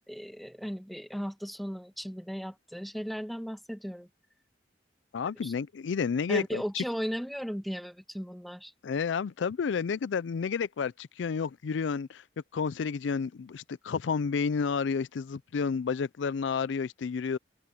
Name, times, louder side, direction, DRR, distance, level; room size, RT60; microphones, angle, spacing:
voice 1, 0.1-4.1 5.4-5.5 6.3-8.7, equal, ahead, 1.9 m, -36 dB
voice 2, 5.1-6.8 8.8-12.2 12.5-17.4, left 5 dB, 85° left, 0.4 m, -30 dB
head